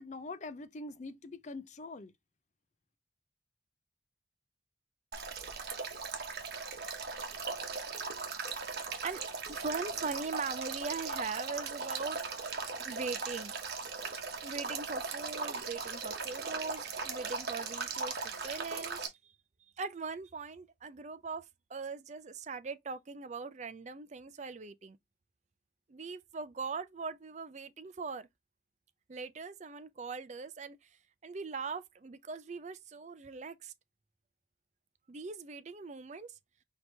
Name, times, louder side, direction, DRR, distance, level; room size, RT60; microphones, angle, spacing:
voice 1, 0.0-2.1, left 3 dB, 40° left, 0.5 m, -44 dB
Male speech man speaking / Stream / Trickle dribble, 5.1-19.1, right 4 dB, 60° right, 1.1 m, -38 dB
voice 2, 9.5-12.2 12.8-13.5 14.4-19.1 19.8-25.0 25.9-28.3 29.1-30.9 31.2-33.7 35.1-36.3, right 4 dB, 40° right, 0.5 m, -40 dB
4.4 x 2.9 x 3.2 m
head